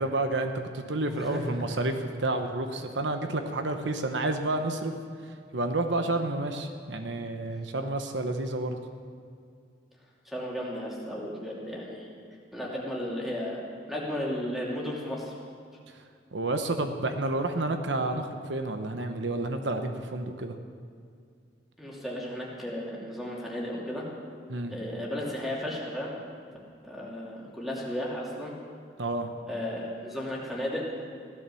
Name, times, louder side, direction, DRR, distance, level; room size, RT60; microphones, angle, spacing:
voice 1, 0.0-4.9 5.5-8.8 16.3-20.6 24.5-24.7 29.0-29.3, right 2 dB, 80° right, 6 dB, 1.0 m, -30 dB
voice 2, 1.1-1.4 10.2-12.1 12.5-13.6 13.9-15.3 21.8-24.0 24.7-26.1 26.8-28.5 29.5-30.8, left 1 dB, ahead, -4 dB, 2.7 m, -34 dB
16.0 x 12.0 x 7.0 m, 2.3 s
head